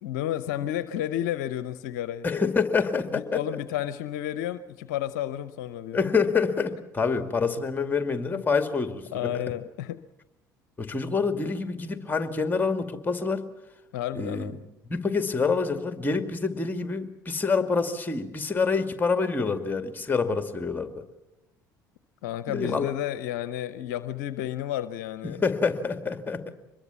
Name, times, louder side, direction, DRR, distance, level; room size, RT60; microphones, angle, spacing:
voice 1, 0.0-2.3 3.1-6.0 8.3-8.4 9.1-10.0 13.9-14.6 22.2-25.4, left 12 dB, 70° left, 14 dB, 0.7 m, -31 dB
voice 2, 2.2-3.4 5.9-9.3 10.8-13.4 14.1-14.6 14.9-21.0 22.5-22.9 25.2-26.5, left 4 dB, 20° left, 8 dB, 2.3 m, -27 dB
24.5 x 21.5 x 7.1 m, 0.91 s
figure-of-eight pair, 60°, 10 cm